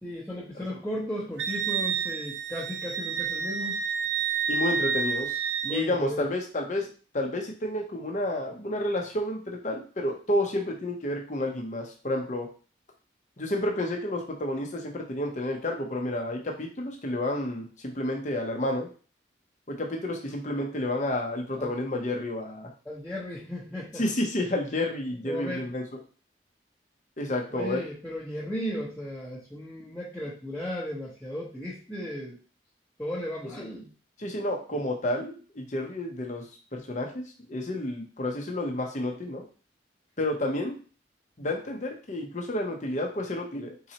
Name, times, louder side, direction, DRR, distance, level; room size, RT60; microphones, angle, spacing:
voice 1, 0.0-3.8 5.6-6.2 21.6-21.7 22.8-24.0 25.2-25.7 27.5-32.4 33.0-33.9, left 1 dB, 5° left, -9 dB, 0.9 m, -35 dB
Wind instrument woodwind instrument, 1.4-5.9, right 6 dB, 75° right, 0.4 m, -29 dB
voice 2, 4.5-5.4 5.7-12.5 13.4-18.9 19.7-22.7 23.9-25.8 27.2-27.8 33.6-33.7 34.2-36.4 36.7-37.2 37.5-39.4 40.2-40.7 41.4-43.9, left 1 dB, 40° left, 1 dB, 0.8 m, -30 dB
4.2 x 3.8 x 2.9 m, 0.37 s
head